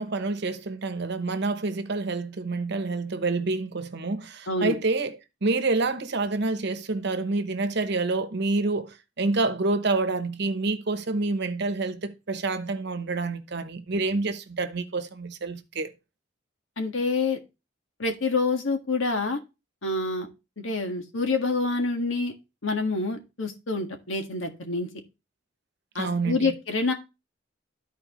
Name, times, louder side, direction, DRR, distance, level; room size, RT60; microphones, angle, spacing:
voice 1, 0.0-5.2 5.4-15.9 25.9-26.6, right 3 dB, 60° right, 1.0 m, -28 dB
voice 2, 16.8-17.4 18.0-19.4 19.8-20.3 20.6-22.3 22.6-24.9 25.9-26.9, left 3 dB, 80° left, 1.7 m, -27 dB
13.0 x 4.6 x 3.0 m
head